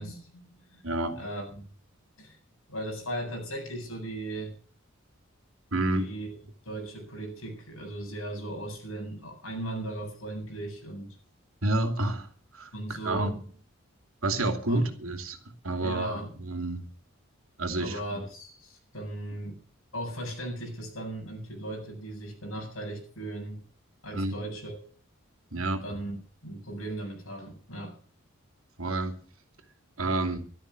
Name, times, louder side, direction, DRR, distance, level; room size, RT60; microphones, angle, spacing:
voice 1, 0.0-0.8 1.2-1.7 2.2-2.4 2.7-4.5 5.9-6.4 6.6-11.2 12.7-13.3 14.7-14.8 15.8-16.3 17.8-19.6 19.9-23.6 24.0-24.7 25.8-26.2 26.4-28.0, right 1 dB, 80° left, 7.9 m, -37 dB
voice 2, 0.8-1.2 5.7-6.1 11.6-12.3 12.5-13.3 14.2-15.4 15.6-16.9 17.6-18.2 24.1-24.4 25.5-25.8 28.8-29.2 30.0-30.4, right 2 dB, 85° right, 2.7 m, -29 dB
13.0 x 13.0 x 6.4 m
head